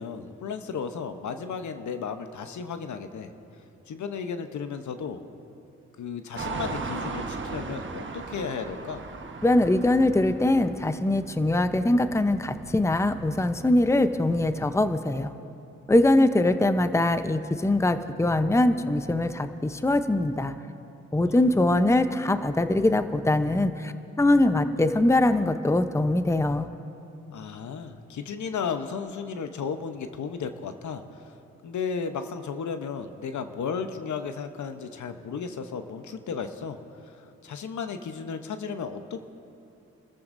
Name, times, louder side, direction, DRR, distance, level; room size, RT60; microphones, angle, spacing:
voice 1, 0.0-3.3 3.9-5.2 6.0-9.0 17.8-18.1 21.2-21.4 27.3-31.3 31.6-39.2, left 6 dB, 65° left, 8 dB, 1.0 m, -34 dB
sound 1, 6.4-14.7, right 4 dB, 35° right, 1.3 m, -38 dB
voice 2, 9.4-15.3 15.9-20.5 21.1-26.7, left 1 dB, 10° left, 10 dB, 0.8 m, -22 dB
29.0 x 14.0 x 2.7 m, 2.8 s
supercardioid pair, 45°, 32 cm